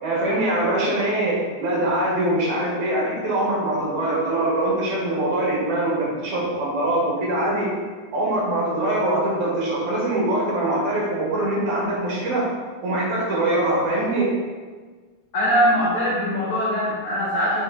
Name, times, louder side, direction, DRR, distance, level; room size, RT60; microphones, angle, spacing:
voice 1, 0.0-7.7 8.1-12.4 12.8-14.3, right 1 dB, 65° right, -5 dB, 3.3 m, -23 dB
voice 2, 15.3-17.6, equal, 45° left, -9 dB, 2.1 m, -21 dB
7.2 x 4.5 x 4.0 m, 1.4 s
omnidirectional pair, 3.7 m